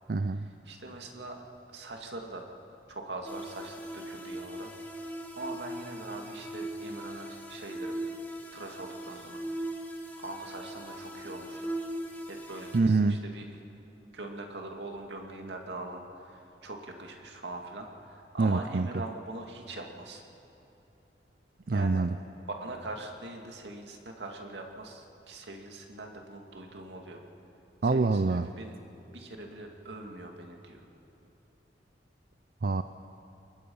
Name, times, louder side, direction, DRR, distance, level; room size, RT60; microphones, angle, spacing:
voice 1, 0.1-0.5 12.7-13.2 18.4-18.9 21.7-22.2 27.8-28.5 32.6-32.8, right 3 dB, 55° right, 10 dB, 0.5 m, -25 dB
voice 2, 0.7-1.4 1.7-2.5 2.9-8.1 8.5-9.7 10.2-11.8 12.3-13.5 14.1-20.2 21.7-22.0 22.6-27.2 27.8-28.7 29.1-30.9, right 2 dB, 75° right, 2 dB, 2.4 m, -42 dB
sound 1, 3.2-12.8, right 1 dB, 10° left, 2.1 m, -39 dB
28.0 x 21.5 x 5.6 m, 2.9 s
head